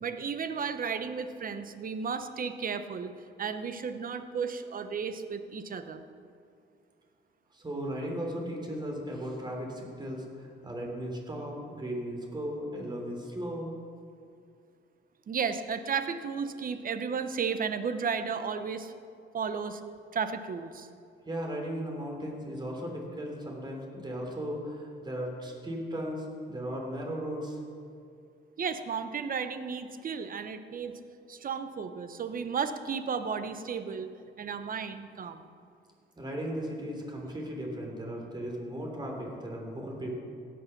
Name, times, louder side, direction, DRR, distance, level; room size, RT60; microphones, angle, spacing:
voice 1, 0.0-3.1 3.4-6.0 15.3-18.9 19.3-19.8 20.1-20.9 28.6-31.0 31.3-34.1 34.4-35.5, right 6 dB, 45° right, 10 dB, 0.9 m, -33 dB
voice 2, 7.5-13.7 21.2-27.6 36.2-40.2, equal, 20° right, 0 dB, 3.2 m, -36 dB
17.0 x 6.5 x 6.0 m, 2.4 s
cardioid pair, 90°, 20 cm